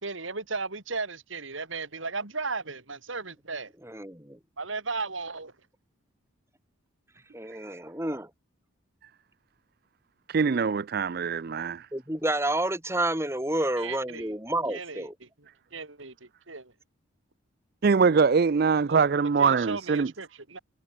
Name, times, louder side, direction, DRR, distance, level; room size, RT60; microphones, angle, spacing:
voice 1, 0.0-3.7 4.6-5.5 13.8-14.3 14.7-16.7 18.9-19.1 19.4-20.6, right 4 dB, 70° right, 3.0 m, -36 dB
voice 2, 3.8-4.4 7.3-8.3 11.9-15.1, right 1 dB, 15° right, 5.6 m, -29 dB
voice 3, 10.3-11.9 17.8-20.1, right 5 dB, 50° right, 0.4 m, -23 dB
head